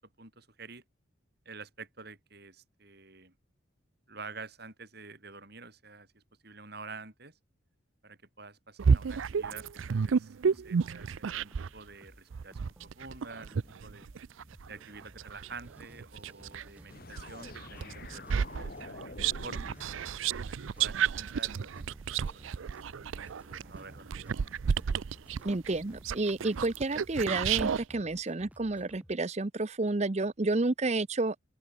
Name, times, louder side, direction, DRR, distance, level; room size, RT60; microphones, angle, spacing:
voice 1, 0.2-0.8 1.4-3.3 4.1-7.4 8.0-14.1 14.7-19.8 20.4-21.9 22.3-24.5, right 4 dB, 50° right, 4.3 m, -49 dB
sound 1, 8.8-11.8 12.3-16.7 17.2-27.8, right 6 dB, 75° right, 0.4 m, -31 dB
sound 2, 9.3-29.2, equal, 5° right, 5.9 m, -56 dB
sound 3, 16.9-20.8, left 3 dB, 45° left, 1.4 m, -48 dB
voice 2, 25.4-31.4, right 2 dB, 35° right, 0.7 m, -30 dB
open air
head